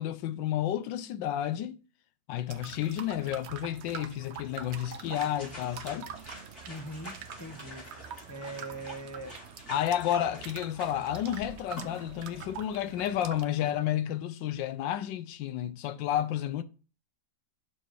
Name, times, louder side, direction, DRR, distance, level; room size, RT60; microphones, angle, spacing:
voice 1, 0.0-1.8 2.3-6.1 9.7-16.6, left 11 dB, 85° left, 1.3 m, -31 dB
sound 1, 2.5-13.4, right 7 dB, 80° right, 0.6 m, -45 dB
sound 2, 4.5-12.1, left 2 dB, 55° left, 3.9 m, -49 dB
voice 2, 6.7-7.9 8.3-9.4, right 2 dB, 20° left, 0.4 m, -41 dB
6.5 x 4.5 x 4.6 m
omnidirectional pair, 2.0 m